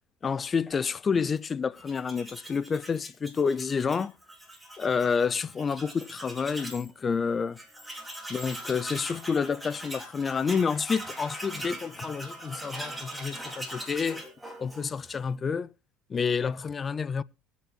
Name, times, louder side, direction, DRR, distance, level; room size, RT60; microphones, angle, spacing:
voice 1, 0.2-4.1 4.8-7.6 8.3-14.2 14.6-15.7 16.1-17.2, left 5 dB, 30° left, 0.5 m, -29 dB
Tools, 1.8-6.9 7.2-7.3 7.6-15.2, right 1 dB, 5° right, 3.0 m, -41 dB
22.5 x 8.2 x 2.4 m
supercardioid pair, 90°, 0 cm